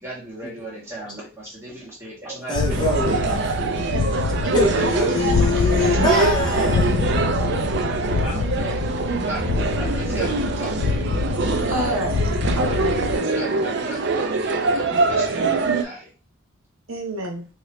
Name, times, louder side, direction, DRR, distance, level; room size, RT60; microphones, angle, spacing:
voice 1, 0.0-2.8 4.7-5.9 6.3-7.3 8.0-8.8 9.2-9.5 9.7-10.7 11.6-12.0 13.0-16.1, right 1 dB, 10° right, 1.4 m, -36 dB
sound 1, 2.5-13.2, left 4 dB, 70° left, 0.3 m, -25 dB
voice 2, 2.5-3.8 4.5-7.1, left 2 dB, 20° left, 1.0 m, -24 dB
sound 2, 2.7-15.8, right 4 dB, 55° right, 0.4 m, -24 dB
voice 3, 11.7-12.2 12.5-13.2 16.9-17.5, equal, 90° right, 0.9 m, -29 dB
2.9 x 2.8 x 3.1 m
head